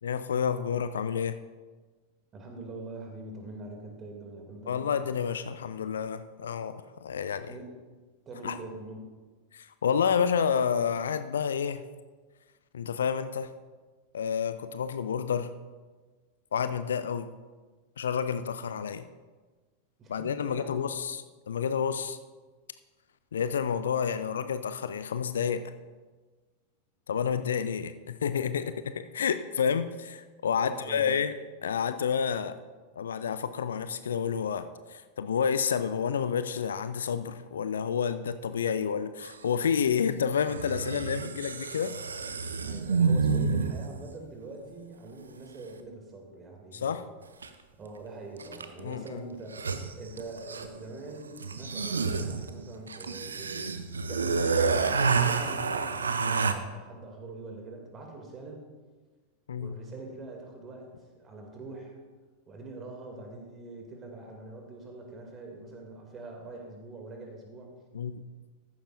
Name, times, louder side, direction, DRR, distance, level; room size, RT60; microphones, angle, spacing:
voice 1, 0.0-1.4 4.7-7.5 8.4-8.6 9.5-11.8 12.7-13.5 14.1-15.5 16.5-17.3 18.0-19.0 20.1-22.2 23.3-25.6 27.1-31.3 31.6-32.6 32.9-42.0 46.7-47.0 48.8-49.2 59.5-59.8 67.9-68.2, left 7 dB, 65° left, 12 dB, 0.5 m, -29 dB
voice 2, 2.3-5.0 7.5-7.7 8.3-9.1 20.0-21.0 30.5-31.1 42.6-47.1 47.8-49.6 49.9-53.8 54.1-58.6 59.6-62.0 62.5-67.7, right 2 dB, 25° right, 2 dB, 2.5 m, -44 dB
sound 1, 39.2-39.3 40.5-44.0 47.4-47.5 48.4-48.8 49.1-49.2 49.4-50.8 51.4-56.5, right 5 dB, 75° right, 0.6 m, -29 dB
14.0 x 11.5 x 2.6 m, 1.3 s
figure-of-eight pair, 90°, 0 cm